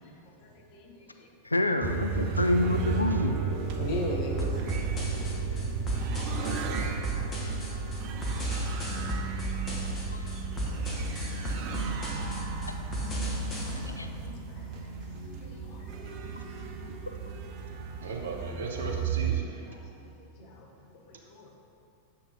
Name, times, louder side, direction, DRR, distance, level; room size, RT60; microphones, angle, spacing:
voice 1, 0.0-1.3 3.7-4.6 5.2-5.3 7.8-7.9 8.5-8.8 9.3-9.4 13.6-16.9 17.2-17.6 17.9-18.1 19.7-20.1 20.4-21.5, left 2 dB, 40° left, -1 dB, 1.2 m, -42 dB
voice 2, 1.4-3.4 10.1-10.2 11.8-12.0 14.0-14.1 17.1-17.2, left 1 dB, 80° left, 7 dB, 0.4 m, -27 dB
sound 1, 1.8-19.4, right 6 dB, 40° right, 0.6 m, -34 dB
sound 2, 4.4-13.8, equal, 25° left, 1.3 m, -34 dB
voice 3, 18.0-19.6, right 3 dB, 65° right, 0 dB, 1.0 m, -36 dB
7.7 x 4.3 x 5.1 m, 2.6 s
figure-of-eight pair, 90°, 0 cm